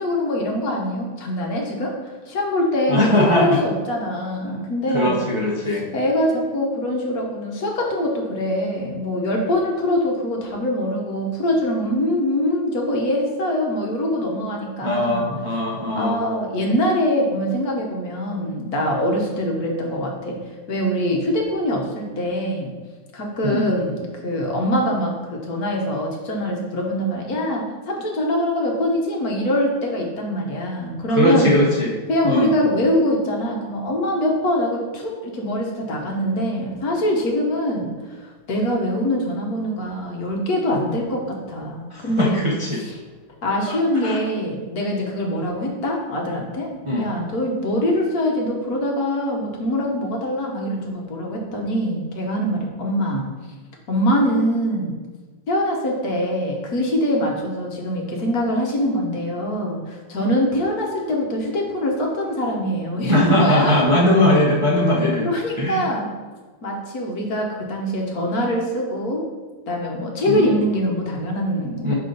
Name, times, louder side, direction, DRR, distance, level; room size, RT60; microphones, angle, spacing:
voice 1, 0.0-5.1 5.9-15.3 16.0-20.4 20.7-22.7 23.1-31.5 32.1-37.9 38.2-41.2 41.5-42.5 42.7-42.9 43.4-53.3 53.9-55.0 55.5-63.9 65.2-66.1 66.6-69.2 69.7-72.0, equal, 55° left, 0 dB, 1.4 m, -23 dB
voice 2, 2.9-3.6 4.5-4.6 4.9-5.9 14.8-16.2 23.4-23.7 31.1-31.9 32.2-32.5 41.9-42.8 43.7-44.2 46.8-47.1 63.1-65.3 65.6-65.9 70.3-70.6 71.8-71.9, left 1 dB, 40° right, -5 dB, 0.4 m, -20 dB
5.6 x 4.9 x 3.9 m, 1.4 s
omnidirectional pair, 2.0 m